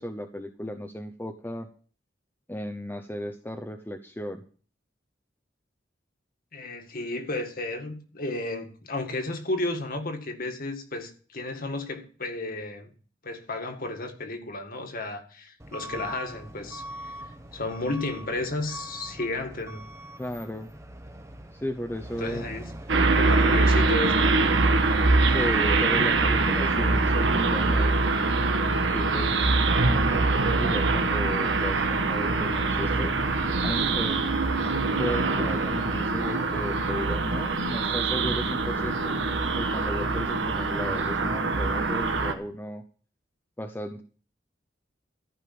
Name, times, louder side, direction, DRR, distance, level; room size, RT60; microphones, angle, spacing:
voice 1, 0.0-1.7 2.5-4.4 20.2-20.7 21.5-22.4 25.2-28.1 28.9-29.5 29.8-33.2 33.6-34.2 35.0-39.1 39.6-42.8 43.6-44.0, equal, 10° left, 0.8 m, -35 dB
voice 2, 6.5-12.9 13.2-19.9 22.2-22.7 23.2-24.3, left 2 dB, 50° left, 2.0 m, -33 dB
Truck / Alarm, 15.6-32.8, right 1 dB, 15° right, 1.2 m, -44 dB
sound 1, 22.9-42.3, right 3 dB, 80° right, 1.4 m, -24 dB
14.0 x 5.6 x 8.6 m
head